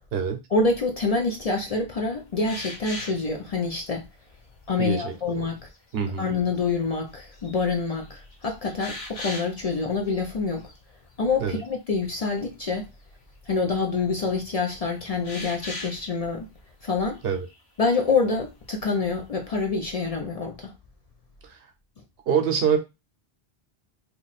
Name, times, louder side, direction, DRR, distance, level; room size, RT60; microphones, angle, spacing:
voice 1, 0.5-4.0 4.7-5.6 6.2-10.7 11.2-12.9 13.5-16.5 16.8-17.2 17.8-20.7, left 4 dB, 45° left, 0.5 m, -26 dB
sound 1, 2.4-3.3 3.9-4.0 4.5-5.0 5.6-6.1 6.6-6.7 7.1-7.6 7.9-9.7 10.1-10.3 10.6-10.8 15.2-16.1 17.0-17.6, left 2 dB, 80° left, 1.3 m, -39 dB
voice 2, 4.8-5.1 5.9-6.3 11.4-11.6 17.2-17.5 21.5-21.6 22.3-22.8, right 7 dB, 70° right, 0.9 m, -24 dB
2.9 x 2.3 x 4.0 m
omnidirectional pair, 1.1 m